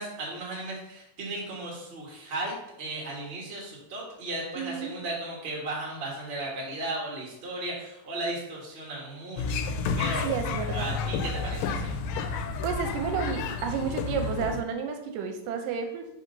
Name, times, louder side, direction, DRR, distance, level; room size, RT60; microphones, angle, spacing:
voice 1, 0.0-9.7 10.0-10.3 10.7-12.0, right 2 dB, 35° right, -4 dB, 0.9 m, -35 dB
voice 2, 4.6-5.0 10.2-11.0 12.6-16.1, right 6 dB, 85° right, 5 dB, 2.2 m, -31 dB
sound 1, 9.4-14.6, left 4 dB, 85° left, 2.2 m, -30 dB
4.8 x 3.8 x 5.3 m, 0.82 s
omnidirectional pair, 4.0 m